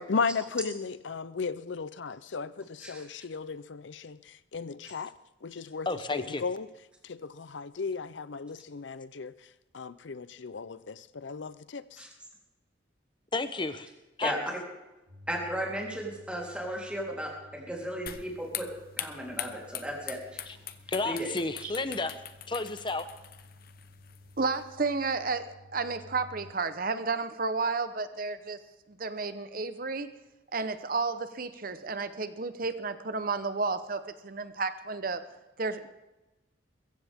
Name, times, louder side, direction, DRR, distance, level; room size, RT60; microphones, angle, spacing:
voice 1, 0.0-5.1 5.4-6.7 7.0-9.3 9.7-12.0, left 4 dB, 75° left, 0.6 m, -35 dB
voice 2, 5.9-6.4 13.3-13.9 14.2-14.3 20.5-20.6 20.9-22.1 22.5-23.1, left 3 dB, 25° left, 0.9 m, -31 dB
sound 1, 15.1-26.5, left 2 dB, 75° right, 3.2 m, -54 dB
voice 3, 15.3-18.7 19.0-20.4 21.0-21.3 21.6-21.7, equal, 5° right, 3.6 m, -35 dB
sound 2, 18.1-24.6, left 10 dB, 50° left, 0.9 m, -42 dB
voice 4, 24.4-28.6 28.9-30.1 30.5-35.2 35.6-35.9, right 4 dB, 50° right, 1.0 m, -32 dB
22.5 x 15.0 x 3.6 m
head